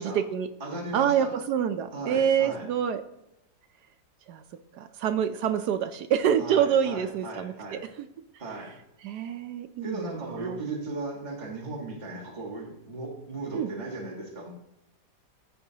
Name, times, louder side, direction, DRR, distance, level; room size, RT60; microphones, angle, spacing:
voice 1, 0.0-0.5 0.9-3.0 4.3-4.4 4.7-8.1 9.0-10.6 13.5-13.7, right 8 dB, 75° right, 9 dB, 1.0 m, -27 dB
voice 2, 0.6-1.3 1.9-2.7 6.4-7.8 8.4-8.7 9.8-14.5, right 2 dB, 25° right, -2 dB, 1.5 m, -37 dB
14.5 x 5.5 x 2.8 m, 0.89 s
omnidirectional pair, 2.0 m